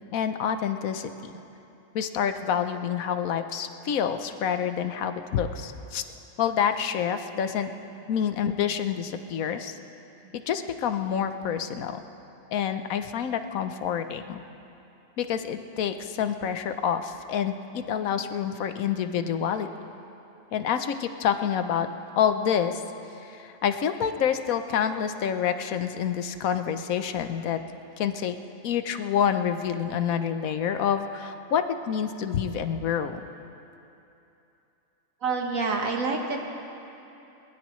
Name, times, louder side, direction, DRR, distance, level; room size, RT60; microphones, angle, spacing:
voice 1, 0.1-1.3 1.9-6.1 6.4-7.7 8.1-9.8 10.3-12.0 12.5-14.4 15.2-17.6 17.9-19.7 20.5-21.9 22.2-22.8 23.2-27.6 28.0-28.4 28.6-33.2, left 8 dB, 85° left, 9 dB, 1.2 m, -27 dB
voice 2, 35.2-36.4, right 4 dB, 75° right, 1 dB, 1.8 m, -27 dB
22.0 x 19.5 x 3.1 m, 2.9 s
omnidirectional pair, 1.4 m